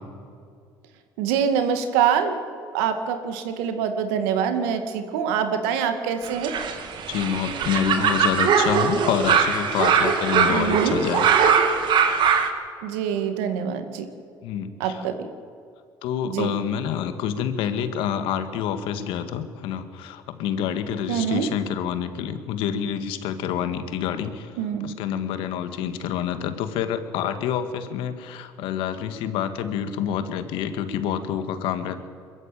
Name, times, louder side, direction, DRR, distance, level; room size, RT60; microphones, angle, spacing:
voice 1, 1.2-2.4 2.7-6.6 10.5-11.0 12.8-14.1 14.8-15.3 16.2-16.5 21.1-21.5 24.6-24.9, right 8 dB, 90° right, 8 dB, 2.1 m, -25 dB
sound 1, 6.2-12.5, right 6 dB, 60° right, 2.5 m, -21 dB
voice 2, 7.1-11.2 14.4-15.0 16.0-24.5 24.8-32.0, left 9 dB, 75° left, 9 dB, 1.9 m, -27 dB
22.5 x 14.0 x 9.1 m, 2.3 s
supercardioid pair, 85°, 9 cm